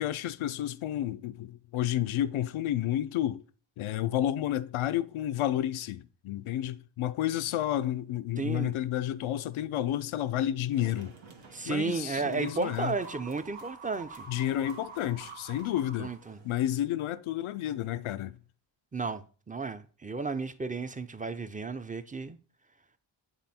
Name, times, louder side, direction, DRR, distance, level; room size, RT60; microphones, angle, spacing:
voice 1, 0.0-3.4 3.8-11.1 11.6-12.9 14.3-16.1 16.4-18.3, left 12 dB, 85° left, 0.5 m, -31 dB
voice 2, 8.4-8.7 11.5-14.3 16.0-16.4 18.9-22.4, right 4 dB, 15° right, 0.5 m, -33 dB
sound 1, 10.7-16.7, right 4 dB, 75° right, 1.2 m, -48 dB
8.1 x 3.4 x 4.2 m
cardioid pair, 55°, 48 cm